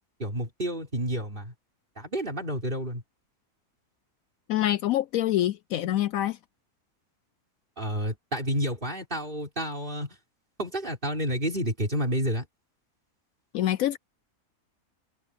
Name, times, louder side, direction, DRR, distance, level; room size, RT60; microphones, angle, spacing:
voice 1, 0.2-1.5 2.0-3.0 7.8-10.2 10.6-12.5, equal, 35° right, 4.6 m, -30 dB
voice 2, 4.5-6.4 13.5-14.0, left 13 dB, 70° left, 0.9 m, -25 dB
omnidirectional pair, 1.6 m